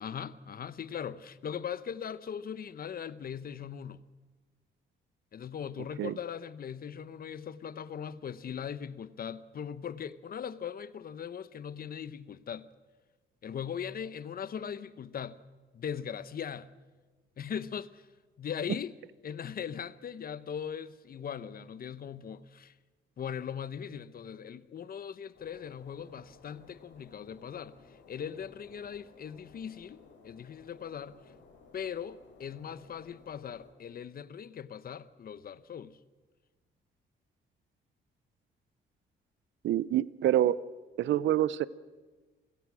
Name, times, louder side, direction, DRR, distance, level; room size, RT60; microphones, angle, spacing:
voice 1, 0.0-4.0 5.3-12.7 13.4-15.4 15.7-16.7 17.4-18.1 18.4-18.9 19.2-22.7 23.2-31.2 31.7-36.0, left 8 dB, 50° left, 0.9 m, -40 dB
sound 1, 25.3-33.7, left 4 dB, 70° left, 4.2 m, -58 dB
voice 2, 39.6-40.6 41.0-41.7, right 12 dB, 75° right, 0.7 m, -26 dB
27.5 x 17.0 x 6.2 m
cardioid pair, 90°, 20 cm